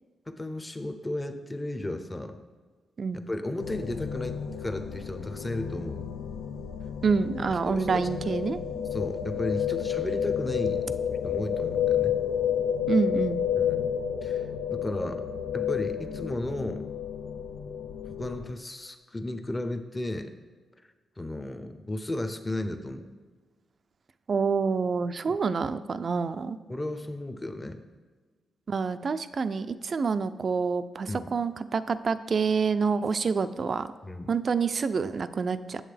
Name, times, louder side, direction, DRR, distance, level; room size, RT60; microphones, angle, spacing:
voice 1, 0.3-2.4 3.3-6.0 7.7-8.1 8.9-10.8 11.1-12.2 13.6-15.2 15.5-16.8 18.0-20.3 21.2-23.1 25.3-25.4 26.7-27.8 31.1-31.3 34.0-34.3, left 1 dB, 20° left, 9 dB, 0.7 m, -34 dB
sound 1, 3.6-18.5, left 9 dB, 85° left, 0.4 m, -31 dB
voice 2, 7.0-8.6 12.9-13.4 24.3-26.6 28.7-33.9 34.3-35.8, right 5 dB, 50° right, 12 dB, 0.3 m, -27 dB
8.6 x 7.2 x 3.3 m, 1.4 s
cardioid pair, 85°, 0 cm